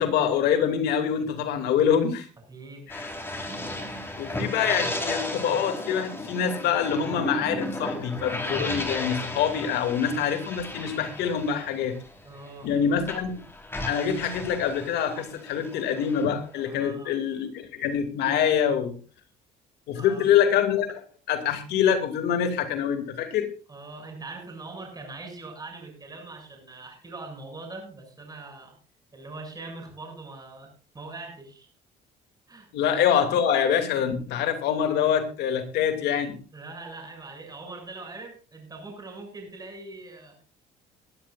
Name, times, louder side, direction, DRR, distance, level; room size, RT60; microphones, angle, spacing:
voice 1, 0.0-2.3 2.9-3.1 4.2-12.0 12.6-13.5 13.8-18.9 19.9-23.5 32.7-36.4, left 8 dB, 80° left, 7 dB, 2.6 m, -25 dB
voice 2, 2.5-3.1 4.2-4.5 12.2-12.7 16.7-17.2 19.9-20.3 23.7-28.8 29.1-31.7 32.5-32.7 36.5-40.4, right 3 dB, 20° right, 2 dB, 7.5 m, -42 dB
sound 1, 2.9-12.7 13.0-16.9, left 1 dB, 15° left, 4.1 m, -34 dB
21.5 x 12.5 x 2.5 m, 0.36 s
cardioid pair, 110°, 17 cm